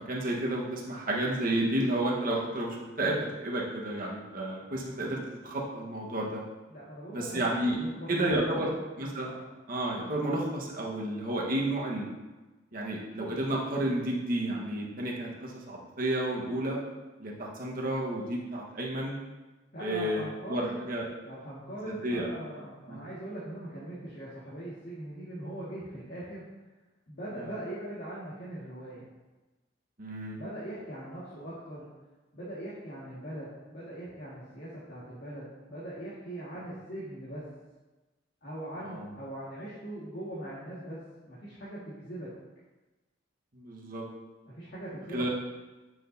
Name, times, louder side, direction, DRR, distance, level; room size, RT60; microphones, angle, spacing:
voice 1, 0.0-6.4 7.1-7.8 8.1-8.7 9.0-9.4 9.7-12.1 12.7-16.8 17.2-19.2 19.8-21.0 22.0-22.3 22.9-23.0 27.3-27.5 30.0-30.4 38.8-39.1 43.5-44.1 45.1-45.3, right 1 dB, 50° right, -3 dB, 1.3 m, -31 dB
voice 2, 6.7-7.5 7.8-8.7 9.2-9.4 19.7-20.8 21.2-26.4 27.1-29.1 30.4-31.8 32.3-37.4 38.4-42.3 44.5-45.3, right 1 dB, 60° left, -10 dB, 1.8 m, -41 dB
9.2 x 6.1 x 2.7 m, 1.2 s
head